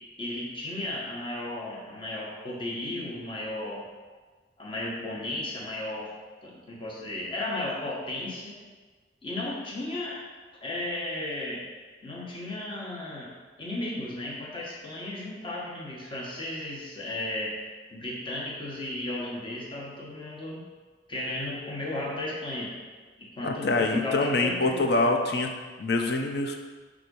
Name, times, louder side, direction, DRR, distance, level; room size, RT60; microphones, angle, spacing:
voice 1, 0.2-3.9 4.6-6.1 6.4-8.6 9.2-10.2 10.6-11.7 12.0-13.3 13.6-17.6 17.9-20.7 21.1-22.7 23.2-25.1, left 1 dB, 30° left, -4 dB, 1.2 m, -34 dB
voice 2, 23.4-25.5 25.8-26.6, left 2 dB, 65° left, 4 dB, 0.7 m, -25 dB
5.9 x 3.6 x 5.3 m, 1.4 s
head